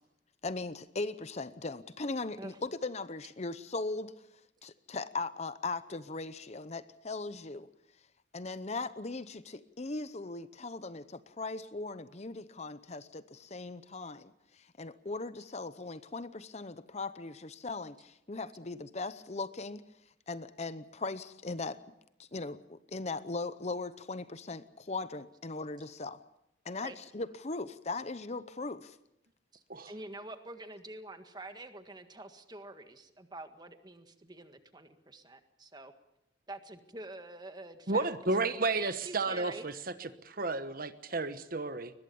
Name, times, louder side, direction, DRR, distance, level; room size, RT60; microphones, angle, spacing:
voice 1, 0.4-4.1 4.6-7.7 8.3-19.8 20.3-21.8 22.2-26.2 26.6-29.0, left 3 dB, 35° left, 14 dB, 0.8 m, -39 dB
voice 2, 29.5-35.9 36.5-38.1 38.7-39.7, right 2 dB, 20° right, 8 dB, 1.7 m, -47 dB
voice 3, 37.9-39.7 40.0-41.9, right 3 dB, 50° right, 11 dB, 1.2 m, -32 dB
22.5 x 20.5 x 7.0 m, 0.86 s
head